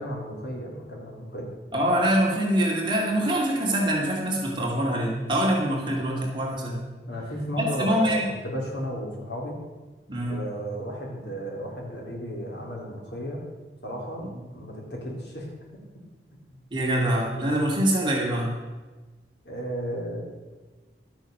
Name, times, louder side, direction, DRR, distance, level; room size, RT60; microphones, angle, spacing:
voice 1, 0.0-1.5 7.1-9.6 10.2-13.5 13.8-15.5 19.4-20.2, equal, 75° left, -1 dB, 3.3 m, -34 dB
voice 2, 1.7-6.8 7.6-8.3 10.1-10.4 16.7-18.6, right 1 dB, 25° right, -3 dB, 2.5 m, -24 dB
12.0 x 8.6 x 6.6 m, 1.3 s
head